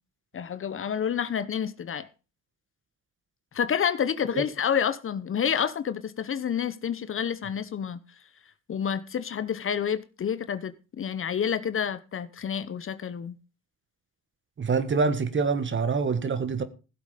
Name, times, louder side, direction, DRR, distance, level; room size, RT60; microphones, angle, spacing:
voice 1, 0.3-2.1 3.5-8.0 8.7-13.3, left 8 dB, 45° left, 0.9 m, -29 dB
voice 2, 14.6-16.6, right 4 dB, 40° right, 1.7 m, -25 dB
16.0 x 7.5 x 5.1 m
cardioid pair, 90°, 30 cm